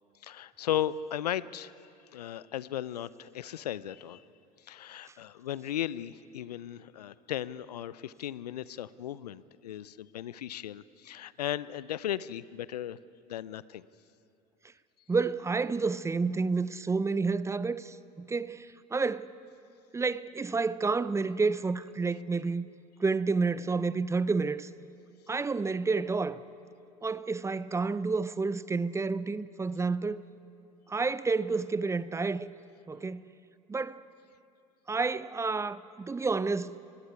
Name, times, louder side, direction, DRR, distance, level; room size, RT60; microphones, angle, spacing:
voice 1, 0.2-1.7 2.1-4.2 4.6-13.0 13.3-13.9, left 11 dB, 85° left, 0.5 m, -36 dB
voice 2, 15.1-19.3 19.9-22.7 23.0-24.7 25.3-26.4 27.0-30.2 30.9-32.5 32.9-33.2 33.7-34.0 34.9-36.8, right 4 dB, 15° right, 0.6 m, -30 dB
20.5 x 16.5 x 9.6 m
hypercardioid pair, 85°, 20 cm